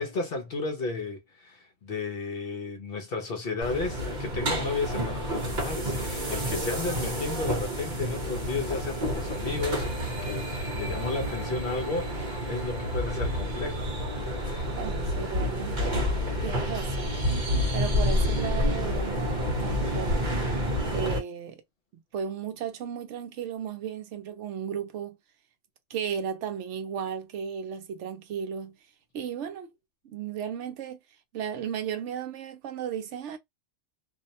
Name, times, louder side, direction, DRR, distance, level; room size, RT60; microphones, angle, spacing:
voice 1, 0.0-13.9, left 3 dB, 55° left, 0.8 m, -33 dB
sound 1, 3.6-21.2, equal, 40° right, 1.0 m, -29 dB
voice 2, 6.5-6.9 10.8-11.2 14.7-16.0 16.4-17.2 17.7-20.4 20.9-21.6 22.1-25.2 25.9-28.8 29.1-29.7 30.0-31.0 31.3-33.4, right 8 dB, 75° right, 0.9 m, -35 dB
2.6 x 2.1 x 2.7 m
omnidirectional pair, 1.3 m